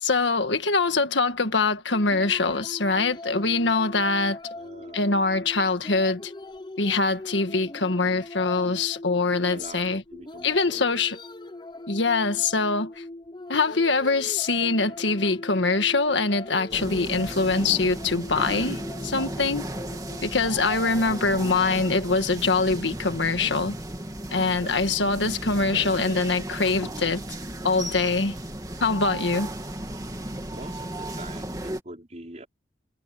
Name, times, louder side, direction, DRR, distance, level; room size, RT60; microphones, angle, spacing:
voice 1, 0.0-4.4 4.9-6.3 6.8-10.0 10.4-11.2 11.9-13.0 13.5-19.7 20.2-23.8 24.3-27.2 27.6-28.4 28.8-29.5, left 3 dB, 85° left, 1.7 m, -24 dB
sound 1, 1.9-21.5, left 2 dB, 25° left, 0.8 m, -41 dB
voice 2, 4.5-5.2 9.5-10.9 24.5-26.4 30.5-32.5, right 1 dB, 40° right, 5.2 m, -44 dB
sound 2, 16.7-31.8, right 1 dB, 20° right, 2.6 m, -35 dB
head